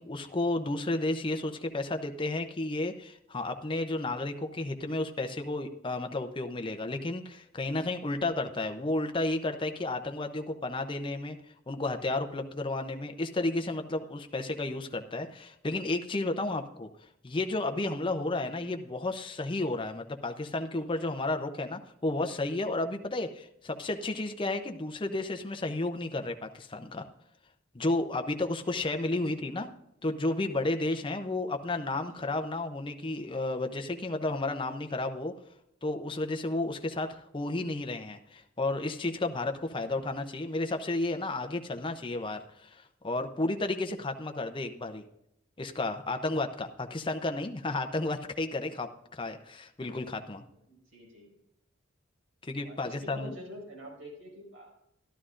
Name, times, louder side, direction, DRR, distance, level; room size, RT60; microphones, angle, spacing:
voice 1, 0.0-11.4 11.7-16.9 17.2-27.0 27.7-29.7 30.0-35.3 35.8-45.0 45.6-50.4 52.4-53.3, left 2 dB, 25° left, 6 dB, 0.6 m, -32 dB
voice 2, 29.1-29.6 32.1-32.3 50.7-51.4 52.6-54.8, equal, 85° right, -1 dB, 4.8 m, -47 dB
12.5 x 12.0 x 2.5 m, 0.79 s
head